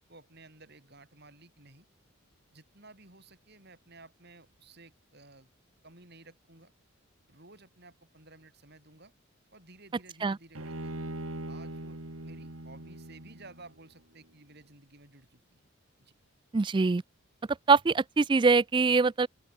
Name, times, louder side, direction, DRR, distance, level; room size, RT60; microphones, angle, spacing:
voice 1, 0.0-1.9 2.5-5.5 5.8-6.7 7.3-9.1 9.5-11.1 11.5-15.6 16.0-16.1, right 2 dB, 50° right, 7.4 m, -55 dB
Bowed string instrument, 10.5-13.8, right 1 dB, 75° right, 3.3 m, -41 dB
voice 2, 16.5-17.0 17.7-19.3, right 4 dB, 20° right, 0.3 m, -23 dB
open air
head